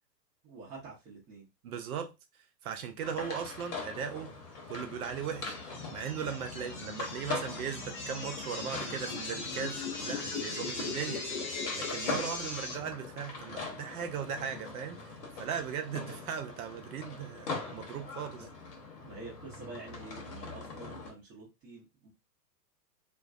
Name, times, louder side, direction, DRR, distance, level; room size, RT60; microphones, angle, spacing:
voice 1, 0.4-1.5 18.3-18.5 19.0-22.1, right 3 dB, 20° right, 0.6 m, -48 dB
voice 2, 1.6-2.1 2.6-4.3 4.7-11.2 11.7-15.0 15.4-18.5, right 7 dB, 60° right, 0.7 m, -38 dB
sound 1, 3.0-21.1, left 3 dB, 65° left, 1.1 m, -42 dB
sound 2, 5.0-12.7, left 3 dB, 30° left, 0.4 m, -39 dB
2.5 x 2.1 x 2.3 m
hypercardioid pair, 120°, 50 cm